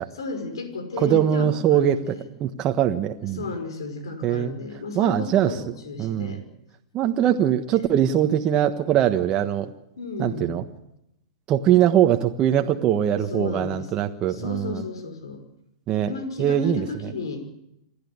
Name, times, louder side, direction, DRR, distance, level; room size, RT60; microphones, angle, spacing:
voice 1, 0.1-2.2 3.4-6.5 7.2-7.3 7.7-7.9 10.0-10.6 13.3-13.9 14.3-15.4 16.0-17.4, left 3 dB, 75° left, 7 dB, 5.9 m, -33 dB
voice 2, 1.0-2.1 2.4-3.4 4.2-4.5 4.9-5.6 6.0-6.4 6.9-9.7 10.2-10.6 11.5-14.8 15.9-16.1 16.4-16.8, right 10 dB, 30° right, 5 dB, 1.4 m, -22 dB
27.5 x 12.0 x 9.8 m, 0.85 s
hypercardioid pair, 110°, 3 cm